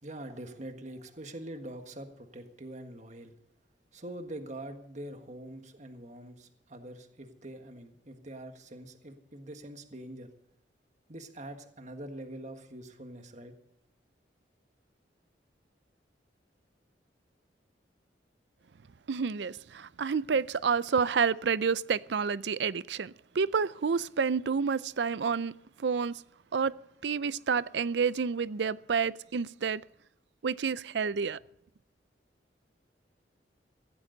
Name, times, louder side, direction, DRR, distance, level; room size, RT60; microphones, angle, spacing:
voice 1, 0.0-3.3 3.9-10.3 11.1-13.5, right 1 dB, 40° right, 1.6 m, -44 dB
voice 2, 19.1-26.2 26.5-26.8 27.0-29.8 30.4-31.4, right 5 dB, 75° right, 0.5 m, -29 dB
16.0 x 16.0 x 4.0 m
head